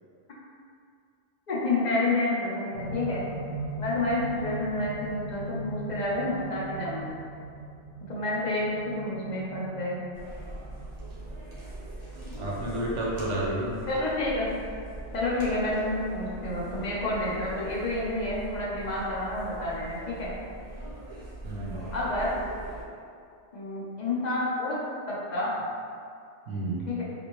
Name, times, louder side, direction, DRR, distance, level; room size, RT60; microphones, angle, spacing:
voice 1, 1.5-3.2 3.8-7.2 8.1-10.0 13.9-14.5 15.1-20.3 21.9-22.3 23.5-24.8 25.1-25.5 26.9-27.0, left 2 dB, 45° left, -6 dB, 0.7 m, -29 dB
sound 1, 2.7-14.9 15.8-15.9, right 2 dB, 80° left, 0.9 m, -40 dB
sound 2, 10.1-22.8, right 2 dB, 55° right, 1.1 m, -41 dB
voice 2, 12.4-13.7 21.4-21.9 26.5-26.9, right 1 dB, 80° right, -4 dB, 1.0 m, -31 dB
3.3 x 2.6 x 3.0 m, 2.4 s
omnidirectional pair, 1.2 m